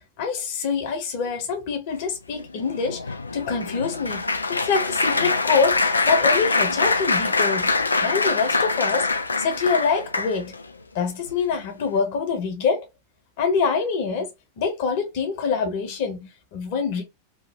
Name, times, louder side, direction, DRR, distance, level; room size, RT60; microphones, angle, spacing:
voice 1, 0.2-3.0 3.3-4.2 4.5-7.7 8.0-9.1 9.4-10.5 10.9-12.9 13.4-14.3 14.6-17.0, left 5 dB, 50° left, 1.0 m, -25 dB
Applause, 2.3-10.6 11.3-11.5 11.8-12.0, left 3 dB, 80° left, 0.4 m, -24 dB
3.1 x 2.5 x 3.3 m
figure-of-eight pair, 90°, 0 cm